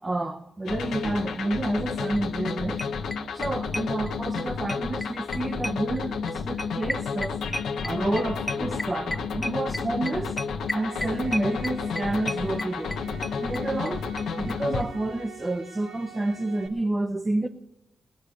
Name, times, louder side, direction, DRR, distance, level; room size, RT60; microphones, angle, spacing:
voice 1, 0.0-2.8 3.3-7.4 7.8-10.4 10.7-13.0 13.4-14.0 14.4-17.5, right 2 dB, 35° right, 1.0 m, -29 dB
sound 1, 0.6-14.8, left 5 dB, 85° left, 0.9 m, -31 dB
sound 2, 2.2-2.3 2.5-2.6 2.8-4.4 4.7-13.9 14.2-14.3 14.5-14.6 14.8-14.9, left 1 dB, 10° left, 0.6 m, -33 dB
sound 3, 10.6-16.7, right 3 dB, 90° right, 1.8 m, -45 dB
19.0 x 6.6 x 9.7 m
supercardioid pair, 40°, 0 cm